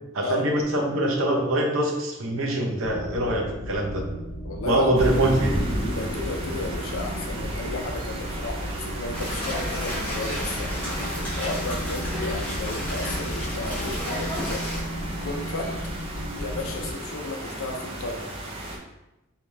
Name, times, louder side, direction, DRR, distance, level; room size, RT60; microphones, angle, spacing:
voice 1, 0.1-4.0 4.6-5.6, right 1 dB, 70° right, 1 dB, 0.7 m, -24 dB
sound 1, 2.8-16.9, equal, 25° left, 0.8 m, -35 dB
voice 2, 4.4-5.0 5.9-10.7 11.1-14.6 15.0-15.7 16.4-18.2, left 2 dB, 80° left, 2 dB, 0.6 m, -33 dB
sound 2, 5.0-18.8, right 1 dB, 30° right, 0.6 m, -34 dB
sound 3, 9.1-14.8, equal, 5° left, 1.2 m, -33 dB
3.3 x 2.9 x 3.2 m, 0.97 s
head